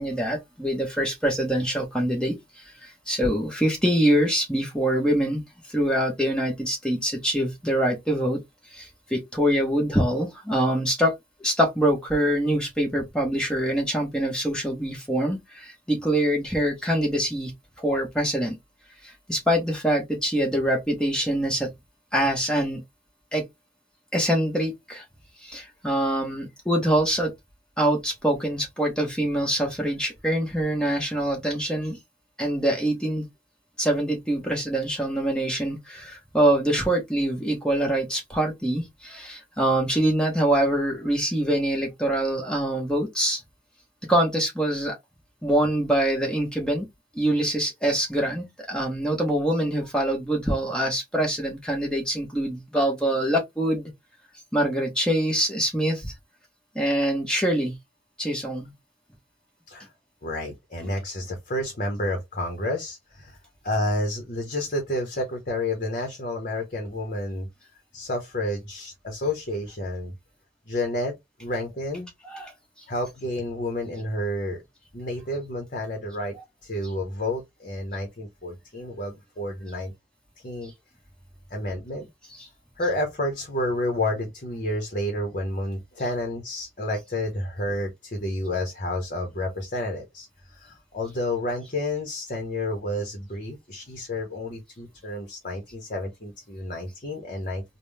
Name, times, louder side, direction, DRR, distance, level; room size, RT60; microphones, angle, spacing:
voice 1, 0.0-2.4 2.8-5.4 5.7-8.4 8.7-11.1 11.4-17.5 17.8-18.6 19.0-21.7 22.1-22.8 23.3-23.4 24.1-25.0 25.4-27.3 27.8-32.0 32.4-33.2 33.8-43.4 44.1-44.9 45.4-46.9 47.1-53.9 54.5-56.1 56.7-57.7 58.2-58.7 72.2-72.5, right 1 dB, 5° left, 1.2 m, -24 dB
voice 2, 60.2-63.4 63.6-67.5 67.9-70.1 70.7-72.1 72.9-74.6 74.9-76.4 76.6-79.9 80.4-80.7 81.5-82.1 82.8-97.6, left 1 dB, 45° left, 0.9 m, -30 dB
3.6 x 2.2 x 3.3 m
head